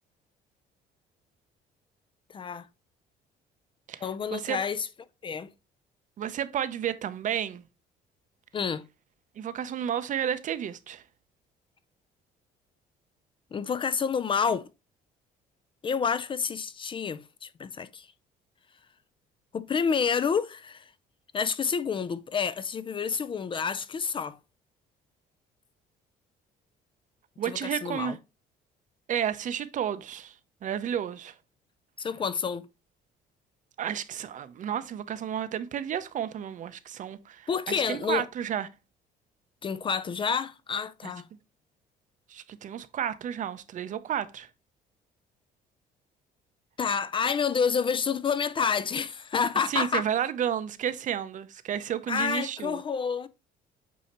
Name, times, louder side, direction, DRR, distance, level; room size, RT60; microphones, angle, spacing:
voice 1, 2.3-2.7 4.0-4.9 5.2-5.5 8.5-8.8 13.5-14.7 15.8-18.1 19.5-20.9 21.3-24.4 27.4-28.2 32.0-32.7 37.5-38.3 39.6-41.3 46.8-50.0 52.1-53.3, left 6 dB, 30° left, 0.4 m, -29 dB
voice 2, 6.2-7.6 9.4-11.0 27.4-28.2 29.1-30.3 30.6-31.3 33.8-38.7 42.3-44.5 49.7-52.8, right 9 dB, 50° right, 0.6 m, -31 dB
8.3 x 2.8 x 4.2 m
cardioid pair, 110°, 17 cm